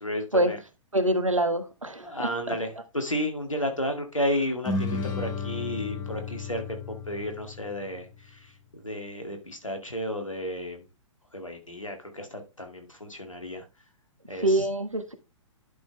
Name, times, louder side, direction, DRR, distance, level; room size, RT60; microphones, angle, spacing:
voice 1, 0.0-0.6 2.0-6.8 7.1-8.1 8.3-10.8 11.3-13.6 14.3-14.6, equal, 85° left, 5 dB, 2.1 m, -32 dB
voice 2, 0.9-2.6 14.4-15.1, right 1 dB, 85° right, 9 dB, 1.4 m, -25 dB
sound 1, 4.7-8.3, left 3 dB, 20° left, 1.7 m, -33 dB
11.0 x 5.3 x 3.3 m, 0.27 s
figure-of-eight pair, 115°, 16 cm